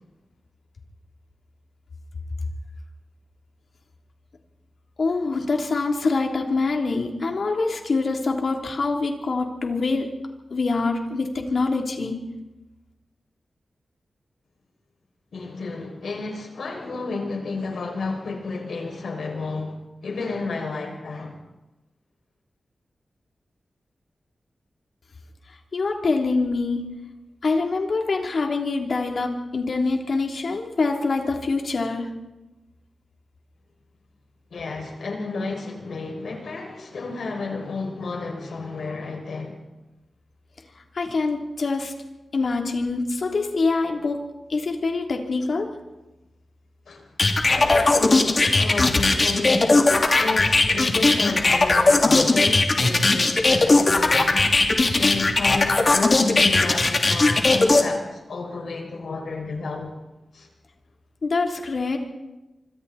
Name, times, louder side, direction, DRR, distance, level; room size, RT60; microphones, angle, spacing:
voice 1, 5.0-10.1 10.5-12.1 25.7-26.8 27.4-32.1 40.9-41.9 42.3-44.2 44.5-45.7 61.2-62.0, left 3 dB, 60° left, 3.4 m, -25 dB
voice 2, 15.3-21.4 34.5-39.6 46.9-47.1 47.5-49.8 50.1-59.9 60.3-60.5, left 3 dB, 90° left, 6.5 m, -31 dB
sound 1, 47.2-57.8, left 3 dB, 40° left, 2.8 m, -18 dB
26.0 x 25.5 x 4.4 m
wide cardioid pair, 120°, 0 cm